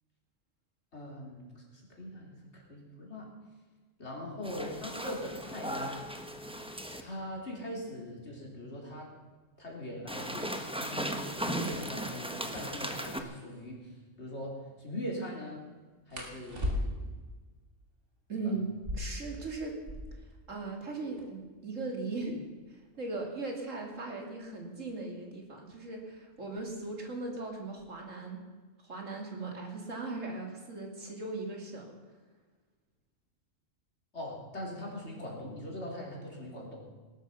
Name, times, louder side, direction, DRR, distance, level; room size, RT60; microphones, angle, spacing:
voice 1, 0.9-3.3 4.0-6.0 6.3-6.4 7.0-9.1 9.6-13.8 14.2-15.6 16.1-17.0 18.4-18.5 34.1-36.8, equal, 60° left, -1 dB, 4.1 m, -41 dB
sound 1, 4.4-7.0 10.1-13.2, equal, 5° right, 1.1 m, -37 dB
sound 2, 13.4-13.6 16.1-17.2 18.7-20.3 20.6-20.7 20.9-21.5 22.1-24.7 25.7-26.0 26.4-26.9 27.2-27.9, left 1 dB, 70° right, 3.2 m, -38 dB
voice 2, 18.3-18.7 18.9-19.8 20.5-22.4 22.7-28.4 28.8-31.9, right 3 dB, 85° right, 1 dB, 3.2 m, -38 dB
19.5 x 12.0 x 5.7 m, 1.4 s
omnidirectional pair, 1.3 m